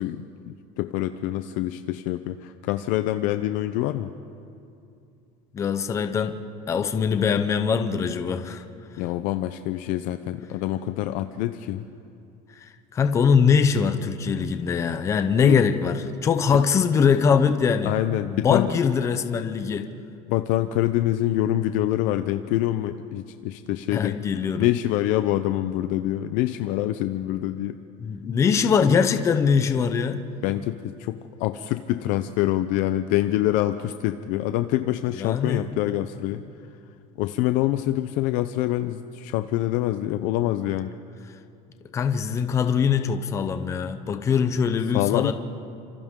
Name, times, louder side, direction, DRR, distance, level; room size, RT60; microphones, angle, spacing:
voice 1, 0.0-4.1 9.0-11.9 15.4-15.6 16.5-16.6 17.8-18.7 20.3-24.2 24.6-27.8 30.4-36.4 37.2-40.9 44.9-45.3, left 14 dB, 55° left, 10 dB, 0.6 m, -25 dB
voice 2, 5.5-6.4 6.7-8.6 12.5-17.9 18.3-19.9 23.9-24.7 28.0-30.2 35.2-35.7 41.9-45.3, left 6 dB, 20° left, 8 dB, 0.7 m, -22 dB
29.5 x 26.0 x 3.7 m, 2.5 s
cardioid pair, 180°, 16 cm